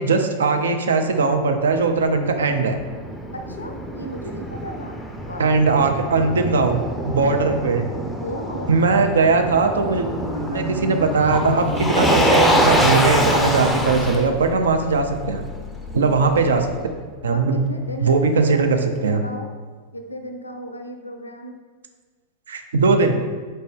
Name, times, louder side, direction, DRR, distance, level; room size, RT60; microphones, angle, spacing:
voice 1, 0.0-2.8 5.4-7.9 8.7-10.1 10.5-15.4 15.9-16.7 17.2-17.6 18.0-19.2 22.5-23.2, right 4 dB, 65° right, 6 dB, 0.3 m, -19 dB
Motor vehicle (road), 1.7-16.8, equal, 5° left, 0.4 m, -25 dB
voice 2, 3.3-5.7 7.2-7.3 7.5-7.9 8.2-8.8 17.3-19.5 19.9-21.6, equal, 80° left, 5 dB, 0.4 m, -35 dB
Marimba xylophone, 9.8-14.9, right 1 dB, 85° right, 0.7 m, -30 dB
4.1 x 2.6 x 3.5 m, 1.5 s
figure-of-eight pair, 90°, 0 cm